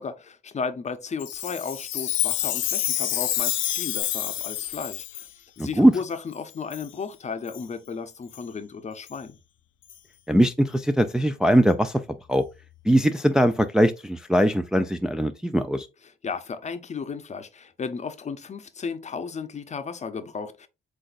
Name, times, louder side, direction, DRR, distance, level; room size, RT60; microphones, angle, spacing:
voice 1, 0.0-5.3 5.6-9.4 16.0-20.7, left 5 dB, 35° left, 0.7 m, -34 dB
Chime, 1.2-5.3 5.9-6.0 6.7-6.9 7.5-7.6 8.3-8.4 9.1-9.2 9.9-10.0, left 12 dB, 80° left, 0.6 m, -28 dB
voice 2, 5.6-5.9 10.3-12.0 12.3-12.4 12.9-15.9, equal, 5° right, 0.3 m, -20 dB
7.7 x 2.6 x 2.5 m
cardioid pair, 90°, 20 cm